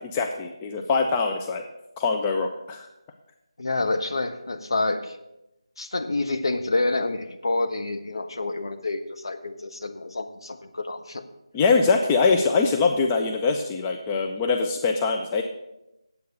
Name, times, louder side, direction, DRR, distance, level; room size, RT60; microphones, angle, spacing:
voice 1, 0.0-1.6 2.0-2.9 11.5-15.4, left 4 dB, 10° left, 3 dB, 0.4 m, -23 dB
voice 2, 3.6-5.2 5.8-11.2, left 2 dB, 55° left, 6 dB, 1.1 m, -28 dB
9.3 x 8.0 x 6.6 m, 0.91 s
figure-of-eight pair, 160°, 3 cm